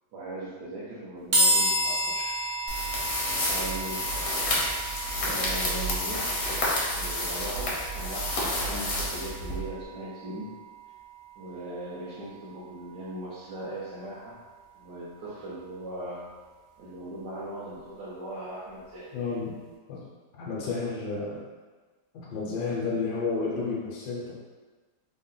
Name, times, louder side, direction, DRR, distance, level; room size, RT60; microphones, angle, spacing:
voice 1, 0.1-2.4 3.5-4.1 5.2-6.3 6.9-10.6 11.4-14.4 14.7-16.3 16.8-19.2, right 1 dB, 75° right, -8 dB, 1.3 m, -39 dB
sound 1, 1.3-14.7, right 1 dB, 45° right, 0.9 m, -33 dB
sound 2, 2.7-9.8, left 1 dB, 55° left, 0.8 m, -30 dB
voice 2, 19.1-19.6 19.9-20.0 20.3-21.4 22.1-24.3, left 4 dB, 75° left, -4 dB, 1.3 m, -31 dB
3.7 x 2.1 x 3.7 m, 1.3 s
omnidirectional pair, 1.8 m